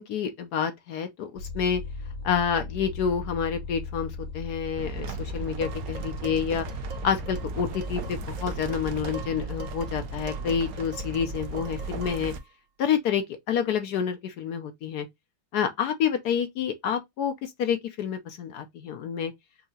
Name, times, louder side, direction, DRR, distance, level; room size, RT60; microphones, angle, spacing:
voice 1, 0.0-1.8 2.2-6.7 7.0-12.3 12.8-15.1 15.5-19.3, left 7 dB, 70° left, 1.0 m, -28 dB
sound 1, 1.4-9.1, left 3 dB, 50° left, 2.2 m, -39 dB
sound 2, 4.8-12.4, right 3 dB, 65° right, 1.0 m, -35 dB
Dishes pots and pans, 5.6-12.5, right 2 dB, 80° right, 1.6 m, -44 dB
5.6 x 2.8 x 2.6 m
omnidirectional pair, 2.1 m